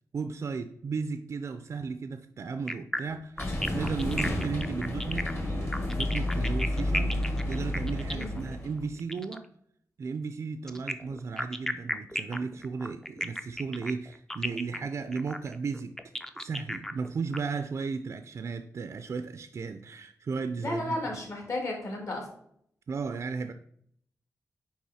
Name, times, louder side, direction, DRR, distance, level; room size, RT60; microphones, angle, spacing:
voice 1, 0.1-7.2 7.5-9.5 10.0-15.9 16.4-21.0 22.9-23.5, right 5 dB, 50° right, 8 dB, 0.4 m, -35 dB
sound 1, 2.7-9.4 10.7-17.4, left 1 dB, 10° left, 0.4 m, -35 dB
sound 2, 3.4-8.9, left 1 dB, 40° left, 1.6 m, -31 dB
voice 2, 20.6-22.2, left 2 dB, 55° left, 0 dB, 2.2 m, -33 dB
9.4 x 3.5 x 4.2 m, 0.68 s
wide cardioid pair, 155°, 6 cm